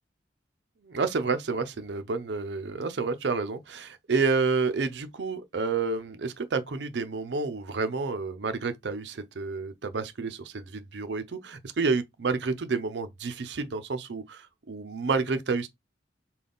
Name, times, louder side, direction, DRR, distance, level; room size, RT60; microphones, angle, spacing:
voice 1, 0.8-15.7, right 4 dB, 75° right, 0.5 m, -29 dB
3.8 x 2.3 x 3.5 m
head